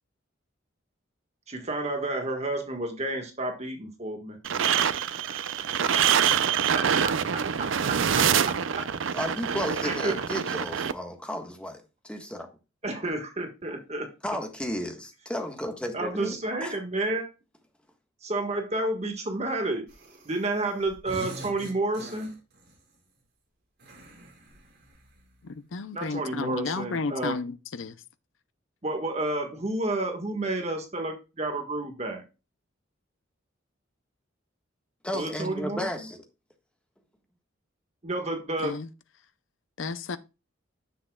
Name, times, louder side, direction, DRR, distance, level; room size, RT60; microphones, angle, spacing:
voice 1, 1.5-5.7 6.7-7.2 7.6-8.8 9.8-10.2 12.8-14.1 15.9-17.3 18.2-19.8 20.2-22.3 25.9-27.4 28.8-32.2 35.1-36.1 38.0-38.8, right 2 dB, 35° right, 1.6 m, -31 dB
sound 1, 4.4-10.9, right 8 dB, 80° right, 0.6 m, -25 dB
voice 2, 9.1-12.5 14.2-16.3 16.6-16.7 35.0-36.2, left 1 dB, 5° left, 1.4 m, -33 dB
sound 2, 19.9-20.6 20.8-22.8 23.8-25.3, right 1 dB, 55° right, 4.9 m, -44 dB
voice 3, 25.4-27.5 27.8-27.9 38.6-38.9 39.8-40.2, left 4 dB, 85° left, 0.6 m, -32 dB
9.9 x 7.5 x 2.3 m
head